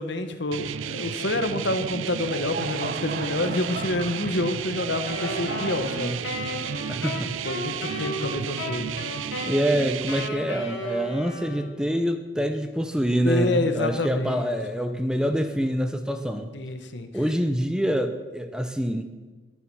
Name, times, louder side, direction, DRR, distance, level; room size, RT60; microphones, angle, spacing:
voice 1, 0.0-6.2 7.4-9.0 13.2-14.5 16.5-17.1, left 2 dB, 65° left, 8 dB, 1.2 m, -28 dB
sound 1, 0.5-10.3, right 8 dB, 80° right, 0.4 m, -33 dB
Laughter / Crowd, 2.1-8.0, right 4 dB, 50° right, 0.9 m, -37 dB
Wind instrument woodwind instrument, 5.1-11.9, left 1 dB, 80° left, 3.7 m, -35 dB
voice 2, 6.9-7.3 7.9-8.1 9.4-16.5 17.1-19.1, equal, 5° right, 8 dB, 0.6 m, -26 dB
21.0 x 7.3 x 6.2 m, 1.3 s
head